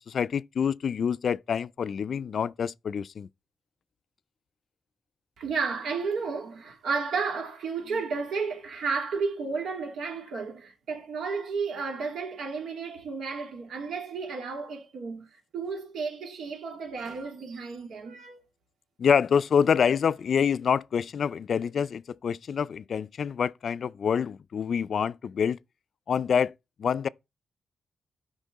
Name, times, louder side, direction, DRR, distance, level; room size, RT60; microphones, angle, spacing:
voice 1, 0.0-3.3 19.0-25.6 26.1-26.5 26.8-27.1, left 7 dB, 65° left, 0.4 m, -26 dB
voice 2, 5.4-18.4, right 5 dB, 85° right, 2.9 m, -32 dB
12.5 x 5.3 x 4.1 m
cardioid pair, 80°, 0 cm